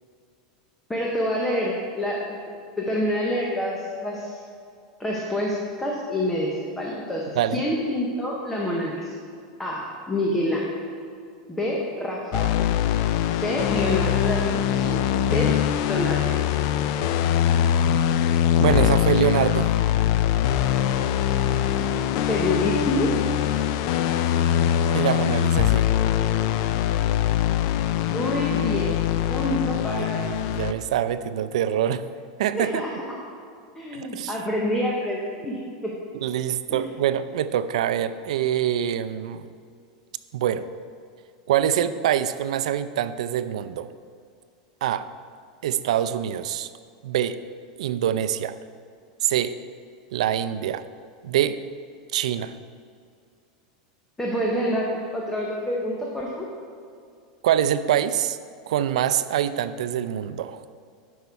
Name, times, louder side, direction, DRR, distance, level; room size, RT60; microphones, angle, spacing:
voice 1, 0.9-2.4 2.8-4.4 5.0-9.1 9.6-10.7 11.5-12.5 13.3-16.4 22.3-23.1 28.0-29.0 29.3-30.2 32.5-33.2 33.8-36.0 36.7-36.8 54.2-56.5, left 1 dB, 5° left, -3 dB, 0.8 m, -27 dB
sound 1, 12.3-30.7, left 10 dB, 50° left, 0.3 m, -22 dB
voice 2, 18.6-19.7 24.9-25.9 30.0-32.1 32.4-32.8 33.9-34.3 36.1-39.5 40.3-40.7 41.5-43.9 44.8-45.1 45.6-46.7 47.0-47.4 47.8-48.6 49.2-49.5 50.1-50.8 51.2-51.6 52.1-52.6 57.4-58.4 58.7-60.6, right 10 dB, 85° right, 13 dB, 0.4 m, -25 dB
11.0 x 5.5 x 4.7 m, 2.3 s
supercardioid pair, 165°, 4 cm